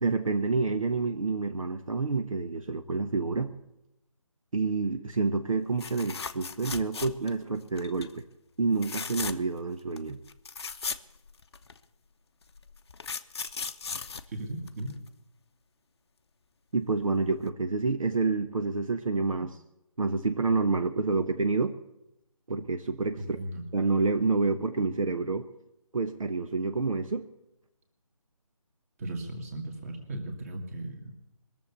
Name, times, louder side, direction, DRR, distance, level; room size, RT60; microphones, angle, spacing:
voice 1, 0.0-3.5 4.5-8.2 8.6-10.2 16.7-19.6 20.0-21.8 22.5-23.4 23.7-25.5 25.9-27.3, right 3 dB, 70° right, 8 dB, 1.0 m, -28 dB
sound 1, 5.8-7.4 7.8-8.1 8.7-9.6 10.0-10.1 10.3-11.8 12.5-15.1 17.0-17.2 17.5-17.6, left 5 dB, 45° left, 0.7 m, -37 dB
voice 2, 14.3-14.9 23.2-23.6 29.0-31.1, right 1 dB, 25° right, 4 dB, 2.1 m, -37 dB
21.0 x 7.2 x 8.0 m, 0.87 s
figure-of-eight pair, 160°, 18 cm